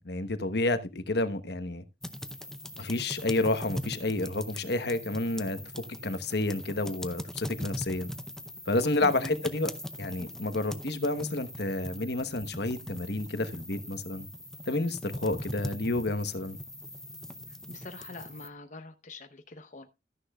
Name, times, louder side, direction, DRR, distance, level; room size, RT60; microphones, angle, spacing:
voice 1, 0.0-1.8 2.8-5.6 6.0-8.1 8.7-9.7 10.0-14.3 14.7-16.6, left 2 dB, 65° left, 1.1 m, -30 dB
sound 1, 2.0-18.5, equal, 5° left, 0.7 m, -41 dB
voice 2, 9.0-9.3 17.5-19.9, left 2 dB, 45° left, 0.8 m, -44 dB
14.0 x 10.0 x 2.3 m
head